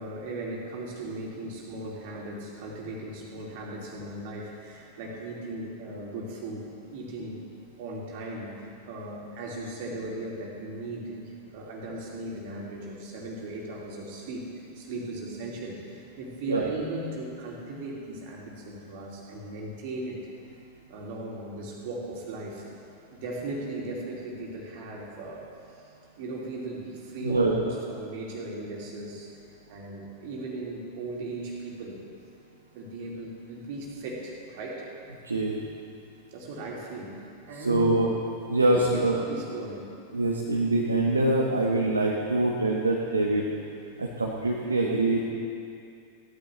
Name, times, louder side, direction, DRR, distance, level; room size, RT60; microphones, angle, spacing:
voice 1, 0.0-7.4 7.8-14.5 14.7-20.2 20.9-22.7 23.1-25.4 26.2-29.3 29.7-32.0 32.7-34.9 36.3-38.0 38.7-39.9, right 2 dB, 50° right, -2 dB, 2.8 m, -37 dB
voice 2, 27.2-27.7 35.2-35.6 37.6-38.1 38.5-39.2 40.1-43.5 44.0-45.3, right 2 dB, 80° right, -2 dB, 1.2 m, -24 dB
17.0 x 13.0 x 3.3 m, 2.5 s
figure-of-eight pair, 90°, 0 cm